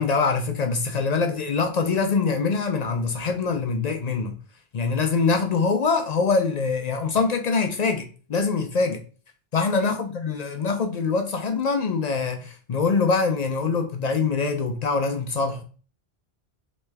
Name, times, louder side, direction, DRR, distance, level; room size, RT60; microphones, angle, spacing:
voice 1, 0.0-4.4 4.7-9.0 9.5-15.6, left 4 dB, 55° left, 0.5 m, -24 dB
3.3 x 3.1 x 3.2 m
omnidirectional pair, 1.1 m